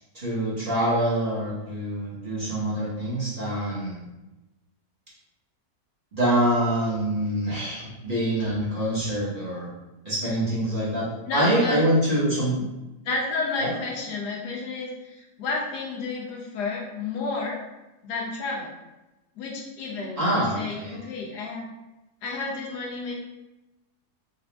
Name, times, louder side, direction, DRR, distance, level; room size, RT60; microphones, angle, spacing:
voice 1, 0.1-4.0 6.1-9.7 10.0-12.6 13.6-13.7 20.2-20.9, right 1 dB, 35° right, -8 dB, 1.2 m, -25 dB
voice 2, 11.2-11.8 13.0-17.6 18.0-18.7 19.3-21.7 22.2-23.1, left 3 dB, 80° left, -2 dB, 1.4 m, -31 dB
3.9 x 2.6 x 3.3 m, 1.0 s
omnidirectional pair, 1.7 m